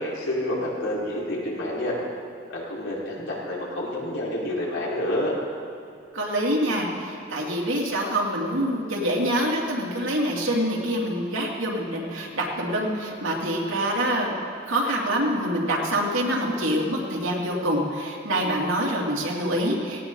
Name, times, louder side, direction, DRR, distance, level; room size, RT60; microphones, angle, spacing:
voice 1, 0.0-1.9 2.5-5.3, left 1 dB, 80° left, -6 dB, 4.7 m, -28 dB
voice 2, 6.1-14.4 14.7-20.0, equal, 90° right, -2 dB, 2.9 m, -25 dB
18.0 x 17.5 x 4.0 m, 2.5 s
head